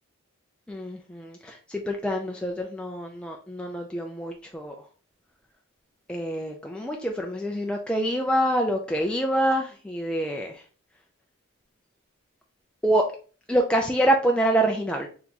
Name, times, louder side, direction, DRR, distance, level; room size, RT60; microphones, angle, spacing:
voice 1, 0.7-4.8 6.1-10.6 12.8-13.1 13.5-15.1, right 1 dB, 5° left, 1 dB, 0.3 m, -26 dB
3.4 x 2.9 x 3.9 m, 0.39 s
head